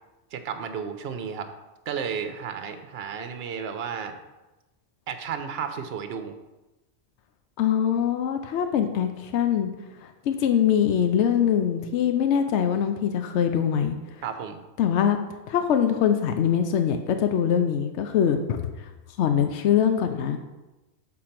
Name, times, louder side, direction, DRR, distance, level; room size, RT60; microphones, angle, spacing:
voice 1, 0.3-1.5 1.9-4.2 5.1-6.4 14.2-14.6, right 7 dB, 65° right, 8 dB, 0.9 m, -33 dB
voice 2, 7.6-9.7 10.3-14.0 14.8-15.2 15.5-18.6 19.2-20.4, left 8 dB, 80° left, 6 dB, 0.9 m, -23 dB
6.5 x 4.0 x 5.8 m, 1.1 s
omnidirectional pair, 1.2 m